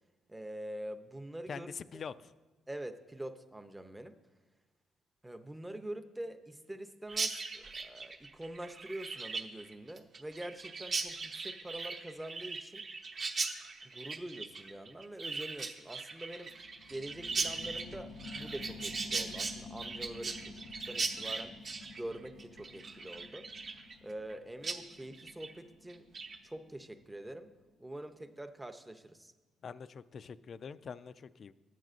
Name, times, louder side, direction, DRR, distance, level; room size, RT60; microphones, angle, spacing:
voice 1, 0.3-1.7 1.9-2.0 2.7-4.2 5.2-12.8 13.8-16.5 16.9-21.6 22.0-23.5 24.0-26.1 26.4-27.5 27.8-29.3, right 1 dB, 10° right, 8 dB, 0.6 m, -45 dB
voice 2, 1.5-2.3 29.6-31.5, left 6 dB, 50° left, 15 dB, 0.3 m, -44 dB
Chirp tweet, 7.1-24.3 24.6-24.8 25.1-25.5 25.9-26.4, right 4 dB, 45° right, 0.8 m, -39 dB
sound 1, 16.5-27.7 28.1-28.2, left 3 dB, 80° left, 1.0 m, -51 dB
12.5 x 9.1 x 2.5 m, 1.2 s
cardioid pair, 90°, 0 cm